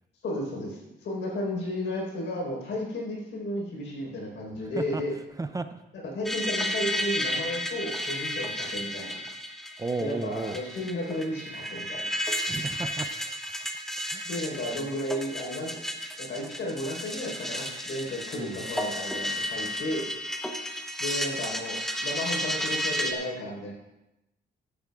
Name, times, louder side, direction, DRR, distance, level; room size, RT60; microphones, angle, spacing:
voice 1, 0.2-5.1 6.0-9.1 10.0-12.1 14.2-15.8 16.2-20.1 21.0-21.8 22.0-23.7, left 1 dB, 90° left, -2 dB, 4.2 m, -33 dB
voice 2, 5.4-5.8 9.8-10.6 12.5-13.4 14.1-14.2 18.3-18.6, right 3 dB, 20° right, 9 dB, 0.5 m, -33 dB
sound 1, 6.2-23.1, equal, ahead, 0.9 m, -33 dB
16.0 x 11.5 x 2.4 m, 0.94 s
wide cardioid pair, 145°, 19 cm